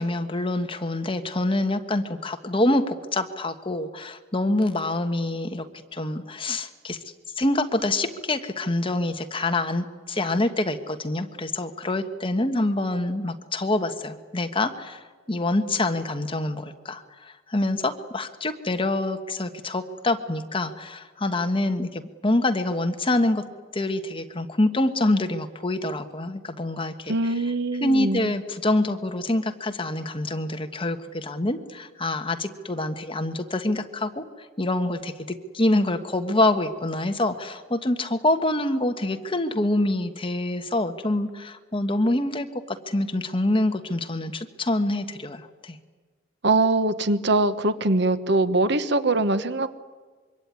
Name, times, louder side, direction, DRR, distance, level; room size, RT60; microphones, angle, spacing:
voice 1, 0.0-5.7 5.9-7.0 7.4-23.4 23.7-27.4 27.8-45.8, left 2 dB, 25° left, 8 dB, 1.5 m, -26 dB
voice 2, 27.1-28.3 46.4-49.7, right 2 dB, 60° right, 12 dB, 1.2 m, -22 dB
25.5 x 24.0 x 9.7 m, 1.4 s
head